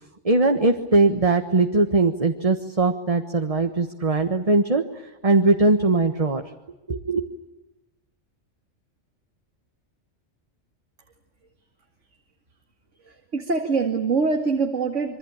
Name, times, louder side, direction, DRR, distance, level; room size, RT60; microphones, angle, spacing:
voice 1, 0.2-6.4 6.9-7.3, right 3 dB, 30° right, 5 dB, 1.5 m, -20 dB
voice 2, 13.0-15.2, right 4 dB, 80° right, 5 dB, 2.4 m, -24 dB
26.5 x 24.0 x 8.9 m, 0.99 s
omnidirectional pair, 1.2 m